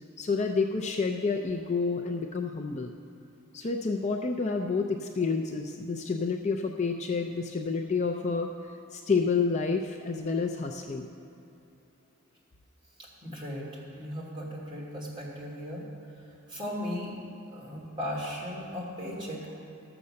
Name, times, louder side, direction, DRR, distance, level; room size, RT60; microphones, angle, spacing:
voice 1, 0.2-2.9 3.5-8.5 8.9-11.1, left 4 dB, 30° left, 3 dB, 0.5 m, -29 dB
voice 2, 13.2-13.6 14.0-15.8 16.5-17.2 17.5-19.5, equal, 25° right, -5 dB, 2.9 m, -36 dB
13.0 x 6.9 x 6.4 m, 2.9 s
head